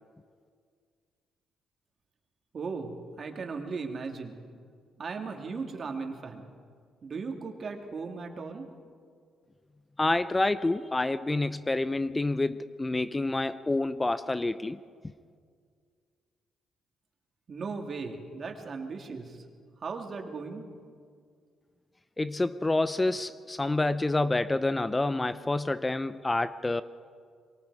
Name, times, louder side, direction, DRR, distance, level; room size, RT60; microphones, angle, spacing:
voice 1, 2.5-4.4 5.0-6.4 7.0-8.7 17.5-19.4 19.8-20.6, right 4 dB, 45° right, 2.6 m, -37 dB
voice 2, 10.0-14.8 22.2-26.8, left 2 dB, 15° left, 0.5 m, -28 dB
23.5 x 23.5 x 4.9 m
cardioid pair, 90°, 0 cm